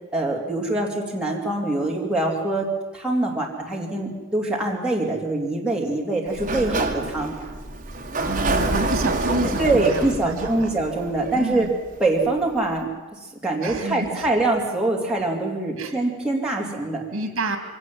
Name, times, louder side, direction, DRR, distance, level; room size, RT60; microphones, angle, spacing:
voice 1, 0.1-2.7 2.9-7.3 9.4-11.7 12.0-12.9 13.4-17.0, right 2 dB, 5° right, -3 dB, 2.9 m, -24 dB
Sliding door, 6.3-11.9, right 2 dB, 35° right, 2.1 m, -27 dB
voice 2, 8.3-10.8 11.3-11.7 13.6-14.3 15.8-15.9 17.1-17.6, right 2 dB, 75° right, 7 dB, 2.4 m, -29 dB
22.5 x 17.5 x 7.7 m, 1.2 s
head